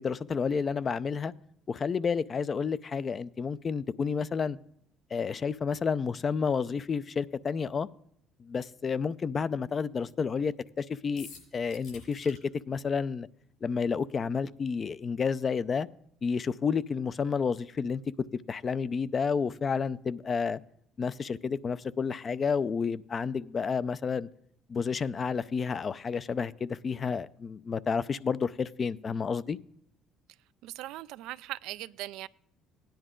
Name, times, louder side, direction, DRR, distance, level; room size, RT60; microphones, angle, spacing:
voice 1, 0.0-1.3 1.7-4.6 5.1-7.9 8.4-11.3 11.5-12.4 12.7-13.3 13.6-15.9 16.2-18.0 18.3-20.6 21.0-24.3 24.7-29.6, left 5 dB, 40° left, 0.5 m, -30 dB
sound 1, 11.2-12.4, left 5 dB, 65° left, 6.3 m, -48 dB
voice 2, 30.6-32.3, right 16 dB, 75° right, 0.4 m, -39 dB
16.5 x 10.5 x 3.7 m
supercardioid pair, 80°, 0 cm